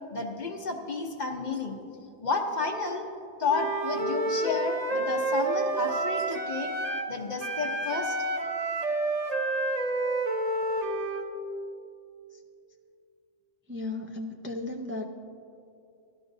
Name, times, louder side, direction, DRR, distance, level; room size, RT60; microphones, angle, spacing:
voice 1, 0.0-1.8 2.2-3.1 3.4-6.7 7.1-8.2, left 4 dB, 40° left, 3 dB, 0.9 m, -31 dB
Wind instrument woodwind instrument, 3.5-7.1 7.4-11.3, right 2 dB, 40° right, 0.8 m, -29 dB
voice 2, 13.7-15.1, left 2 dB, 20° right, 1 dB, 0.3 m, -35 dB
16.5 x 12.0 x 2.7 m, 2.6 s
omnidirectional pair, 1.2 m